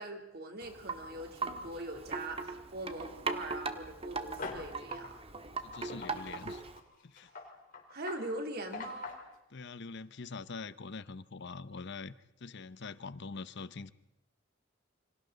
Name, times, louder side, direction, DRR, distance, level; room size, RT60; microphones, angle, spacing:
voice 1, 0.0-5.2 7.9-9.2, right 1 dB, 50° right, 4 dB, 3.2 m, -42 dB
Wind chime, 0.6-6.8, right 4 dB, 30° right, 1.5 m, -40 dB
sound 1, 4.4-4.7 5.0-5.2 5.7-9.3, left 3 dB, 45° left, 3.9 m, -43 dB
voice 2, 5.6-6.6 7.0-7.3 9.5-13.9, left 4 dB, 60° left, 15 dB, 0.8 m, -44 dB
29.0 x 25.5 x 4.0 m, 0.90 s
head